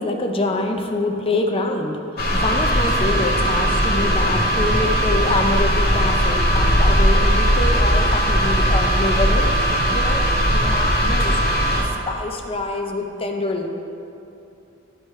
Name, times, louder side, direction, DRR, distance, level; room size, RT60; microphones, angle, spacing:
voice 1, 0.0-2.0 2.3-9.5 9.9-10.2 10.5-11.4 11.7-13.7, left 2 dB, 30° left, 3 dB, 0.6 m, -25 dB
sound 1, 2.2-11.8, equal, 50° left, 0.9 m, -18 dB
12.0 x 4.8 x 3.2 m, 2.8 s
head